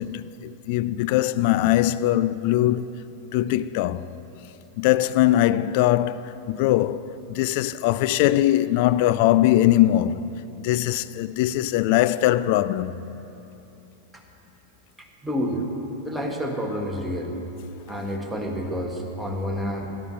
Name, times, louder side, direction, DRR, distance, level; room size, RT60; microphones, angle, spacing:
voice 1, 0.0-2.9 3.3-4.1 4.8-13.0, left 14 dB, 50° left, 0.4 m, -21 dB
voice 2, 15.2-15.6 16.0-17.3 17.9-19.9, equal, ahead, 1.7 m, -29 dB
13.0 x 11.5 x 5.8 m
figure-of-eight pair, 90°, 0 cm